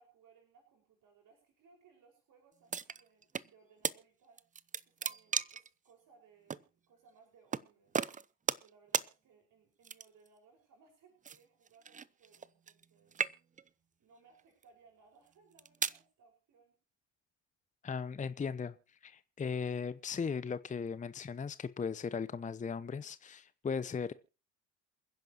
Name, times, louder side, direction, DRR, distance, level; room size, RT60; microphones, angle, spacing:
voice 1, 0.0-8.1 8.6-13.3 14.0-16.8, right 5 dB, 50° right, 5.5 m, -65 dB
sound 1, 2.7-3.5 3.8-4.0 4.4-5.7 6.5-6.6 7.5-7.7 7.9-8.7 8.9-9.1 9.8-10.3 11.2-12.9 13.1-13.7 14.4-14.6 15.3-16.0, right 6 dB, 20° right, 0.6 m, -36 dB
voice 2, 17.8-18.8 19.0-24.1, left 6 dB, 20° left, 0.8 m, -37 dB
28.5 x 10.5 x 3.0 m
hypercardioid pair, 65°, 41 cm